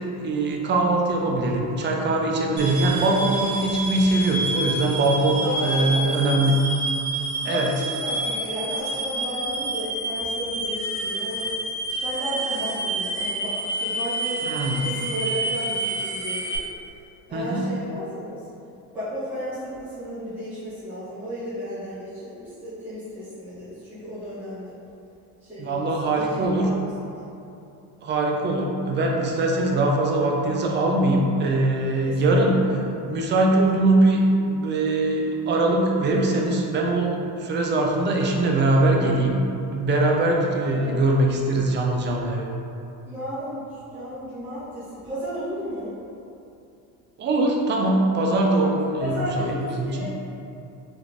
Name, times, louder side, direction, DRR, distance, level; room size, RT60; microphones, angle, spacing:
voice 1, 0.0-6.6 7.4-7.7 14.4-14.8 17.3-17.7 25.6-26.7 28.0-32.6 33.1-39.4 39.7-42.5 47.2-50.1, right 2 dB, 30° right, 0 dB, 0.5 m, -22 dB
sound 1, 2.6-16.6, right 2 dB, 85° right, 0.9 m, -29 dB
voice 2, 5.4-6.4 7.4-11.5 11.8-14.4 14.8-16.6 17.3-18.4 18.9-24.7 25.4-27.3 32.0-32.8 40.7-41.3 43.0-45.9 48.4-48.7 49.0-50.1, equal, 5° right, -16 dB, 1.4 m, -33 dB
3.4 x 3.0 x 2.5 m, 2.7 s
cardioid pair, 115°, 37 cm